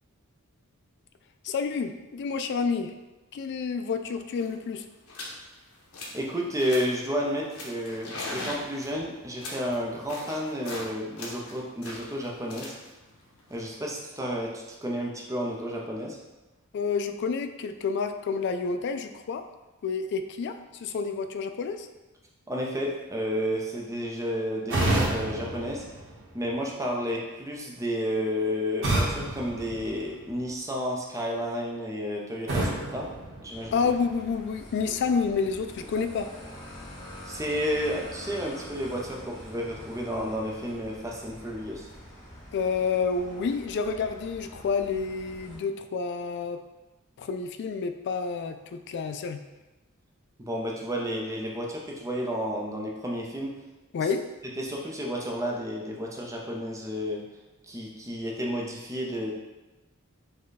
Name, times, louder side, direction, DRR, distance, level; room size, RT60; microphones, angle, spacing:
voice 1, 1.4-2.9 3.3-4.8 16.7-19.4 19.8-21.9 33.7-36.3 42.5-46.6 47.2-49.4 53.9-54.2, left 5 dB, 55° left, 9 dB, 0.3 m, -29 dB
sound 1, 4.0-4.1 4.3-4.6 5.1-5.4 5.7-6.3 6.6-7.0 7.5-10.9 11.2-14.2, left 2 dB, 70° left, 0.9 m, -40 dB
voice 2, 6.1-12.8 13.5-16.2 22.5-25.9 26.3-33.1 33.4-33.8 37.2-41.9 50.4-53.5 54.6-57.2 57.6-59.3, equal, 15° right, -2 dB, 0.6 m, -31 dB
sound 2, 24.7-26.7 28.8-30.5 32.5-34.1, right 1 dB, 60° right, 1.1 m, -30 dB
sound 3, 33.5-45.6, equal, 25° left, 1.5 m, -45 dB
5.2 x 2.3 x 4.0 m, 1.1 s
head